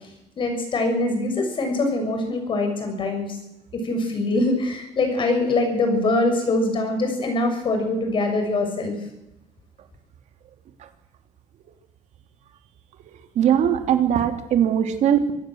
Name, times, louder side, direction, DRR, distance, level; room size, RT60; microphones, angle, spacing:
voice 1, 0.4-3.4 3.7-9.0, left 2 dB, 40° left, 5 dB, 7.0 m, -23 dB
voice 2, 13.4-15.3, right 9 dB, 60° right, 7 dB, 2.8 m, -20 dB
25.5 x 16.5 x 7.9 m, 0.88 s
cardioid pair, 140°, 13 cm